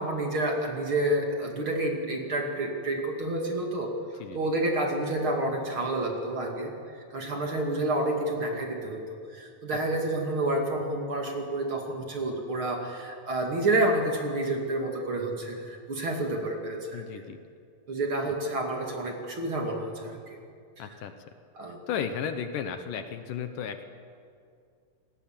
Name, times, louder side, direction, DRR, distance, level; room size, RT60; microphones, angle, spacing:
voice 1, 0.0-3.9 4.3-17.0 17.9-20.4 20.8-20.9 21.6-21.8, right 1 dB, 40° right, 1 dB, 2.8 m, -29 dB
voice 2, 16.9-17.4 20.8-21.1 21.9-23.8, left 7 dB, 70° left, 8 dB, 2.6 m, -34 dB
28.5 x 19.0 x 7.5 m, 2.3 s
omnidirectional pair, 4.2 m